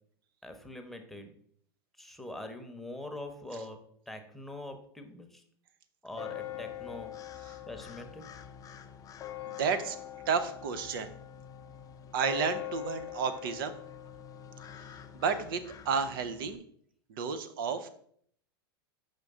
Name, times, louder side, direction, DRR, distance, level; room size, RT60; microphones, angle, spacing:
voice 1, 0.4-1.3 2.0-5.4 6.0-7.1 7.7-8.3, left 1 dB, ahead, 5 dB, 1.0 m, -43 dB
sound 1, 6.1-16.6, left 12 dB, 25° left, 0.6 m, -44 dB
voice 2, 9.6-10.0 10.3-11.1 12.1-13.7 15.1-16.6 17.2-17.9, right 6 dB, 65° right, 10 dB, 0.6 m, -31 dB
6.6 x 5.1 x 3.6 m, 0.62 s
hypercardioid pair, 95°, 13 cm